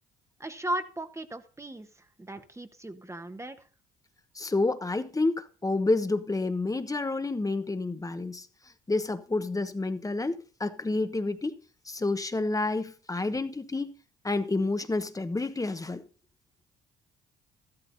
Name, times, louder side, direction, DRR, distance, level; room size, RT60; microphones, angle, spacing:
voice 1, 0.4-1.9 2.2-3.6, right 1 dB, 15° right, 1.3 m, -36 dB
voice 2, 4.3-8.5 8.9-11.6 11.8-13.9 14.2-16.0, left 2 dB, 20° left, 1.2 m, -29 dB
14.0 x 12.5 x 2.8 m
hypercardioid pair, 55°, 19 cm